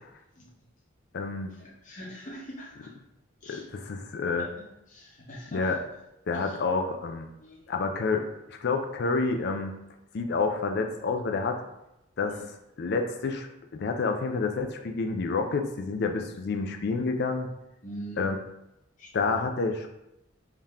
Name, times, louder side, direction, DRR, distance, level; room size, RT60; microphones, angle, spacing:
voice 1, 0.3-0.7 1.5-2.9 3.4-3.6 4.4-5.8 6.3-6.6 7.4-7.8 12.3-12.5 17.8-18.2 19.0-19.4, equal, 40° left, -6 dB, 1.1 m, -44 dB
voice 2, 1.1-1.5 3.5-4.5 5.5-5.8 6.3-7.3 7.7-9.7 10.1-11.6 12.2-12.3 12.8-13.5 13.7-17.5 18.2-18.4 19.1-19.9, left 4 dB, 55° left, 5 dB, 0.4 m, -28 dB
3.6 x 2.8 x 3.6 m, 0.89 s
head